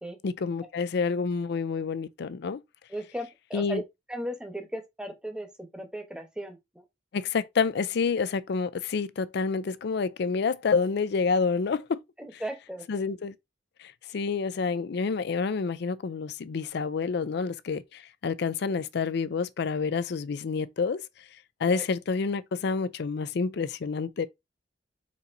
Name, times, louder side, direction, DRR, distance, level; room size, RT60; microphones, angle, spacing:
voice 1, 0.2-2.6 3.5-3.8 7.1-12.0 12.9-13.3 13.8-21.0 21.6-24.3, left 5 dB, 65° left, 0.4 m, -28 dB
voice 2, 2.9-3.8 4.1-6.8 12.2-12.8 21.7-21.8, right 1 dB, 5° right, 1.0 m, -37 dB
4.4 x 4.0 x 2.6 m
head